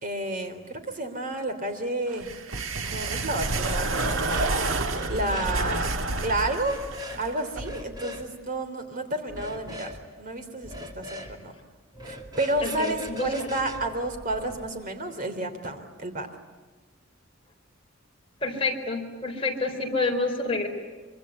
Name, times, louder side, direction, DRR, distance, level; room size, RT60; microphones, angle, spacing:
voice 1, 0.0-2.3 2.8-5.9 6.2-6.8 7.2-9.9 10.2-11.5 12.0-16.3, right 1 dB, 40° right, 6 dB, 3.2 m, -31 dB
sound 1, 2.1-7.7, right 3 dB, 75° right, 1.5 m, -29 dB
sound 2, 3.9-4.6 4.9-5.6 6.6-7.2 7.6-8.3 9.3-10.0 10.6-11.3 11.9-14.6, equal, 20° right, 2.7 m, -40 dB
voice 2, 12.6-13.6 18.4-20.7, left 3 dB, 30° left, 1 dB, 4.3 m, -28 dB
25.0 x 24.5 x 9.7 m, 1.4 s
head